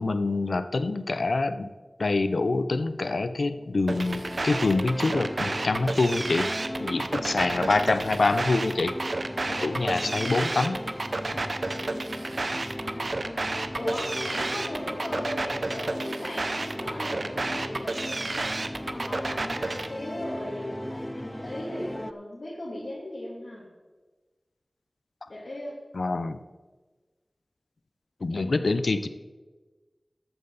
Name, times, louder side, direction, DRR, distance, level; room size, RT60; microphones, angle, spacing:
voice 1, 0.0-1.7 2.0-6.5 6.8-9.0 9.4-10.8 11.3-11.4 25.9-26.4 28.2-29.1, left 3 dB, 85° left, 12 dB, 0.5 m, -26 dB
sound 1, 3.9-22.1, equal, 10° left, 0.4 m, -37 dB
sound 2, 3.9-19.9, right 2 dB, 65° right, 0.6 m, -31 dB
voice 2, 9.8-10.3 12.9-23.6 25.3-25.8 28.3-28.8, left 1 dB, 70° left, -7 dB, 2.6 m, -38 dB
13.5 x 9.0 x 4.0 m, 1.3 s
wide cardioid pair, 65°, 0 cm